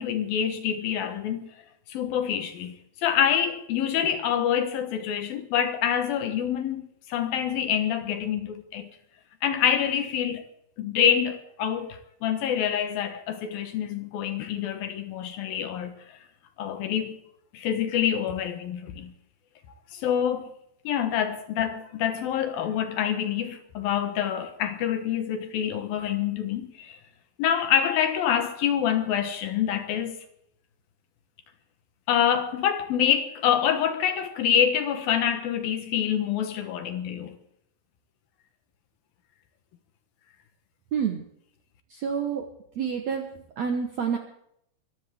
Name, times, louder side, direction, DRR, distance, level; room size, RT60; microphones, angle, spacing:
voice 1, 0.0-1.5 1.9-8.9 9.4-10.5 10.8-16.2 16.6-17.2 17.5-19.1 19.9-20.5 20.8-27.0 27.4-30.2 32.1-37.4, left 9 dB, 70° left, 2.8 m, -26 dB
voice 2, 40.9-41.3 41.9-42.4 42.7-44.2, right 7 dB, 65° right, 1.7 m, -28 dB
23.5 x 14.5 x 3.6 m
omnidirectional pair, 4.7 m